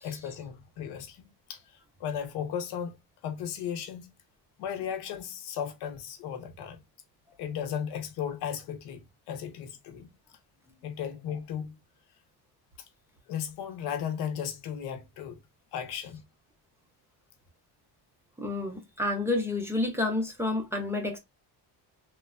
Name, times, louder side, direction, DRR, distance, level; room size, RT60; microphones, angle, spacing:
voice 1, 0.0-3.0 3.2-4.1 4.6-6.8 7.4-10.1 10.8-11.8 13.3-15.4 15.7-16.2, left 8 dB, 80° left, 0.8 m, -36 dB
voice 2, 18.4-21.2, left 2 dB, 5° right, 0.4 m, -29 dB
3.1 x 2.1 x 2.3 m
cardioid pair, 170°, 39 cm